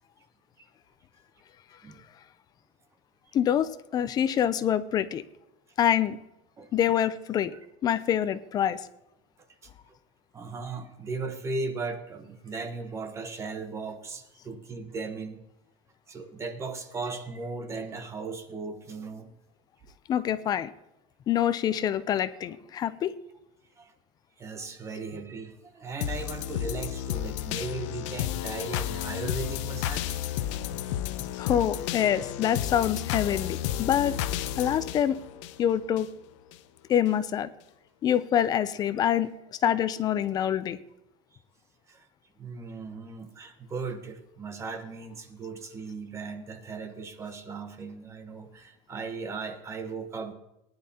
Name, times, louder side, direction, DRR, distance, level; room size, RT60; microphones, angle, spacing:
voice 1, 3.3-5.2 5.8-6.2 6.7-7.5 7.8-8.8 20.1-20.7 21.3-23.1 31.2-34.2 34.6-35.2 35.6-36.1 36.9-37.5 38.0-40.8, left 10 dB, 25° left, 14 dB, 0.4 m, -26 dB
voice 2, 6.6-7.1 9.6-9.7 10.3-15.4 16.1-19.3 23.8-23.9 24.4-30.1 31.4-31.6 41.9-42.1 42.4-50.3, right 4 dB, 20° right, 7 dB, 1.0 m, -37 dB
sound 1, 26.0-36.0 36.5-36.6, left 12 dB, 75° left, 0.7 m, -32 dB
19.0 x 10.5 x 2.8 m, 0.88 s
cardioid pair, 165°, 16 cm